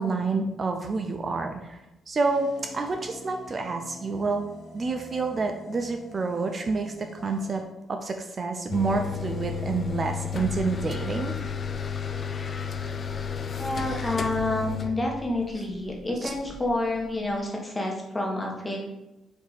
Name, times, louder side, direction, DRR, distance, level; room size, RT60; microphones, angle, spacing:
voice 1, 0.0-1.8 2.1-2.5 2.7-4.4 4.7-7.6 7.9-11.3 16.2-16.3, right 4 dB, 40° right, 5 dB, 0.4 m, -28 dB
sound 1, 2.2-7.6, left 2 dB, 70° left, 0.8 m, -46 dB
sound 2, 8.7-17.4, left 6 dB, 45° left, 0.3 m, -32 dB
voice 2, 13.5-18.8, left 2 dB, 15° left, -1 dB, 1.1 m, -29 dB
4.5 x 2.8 x 3.9 m, 0.97 s
cardioid pair, 90°, 0 cm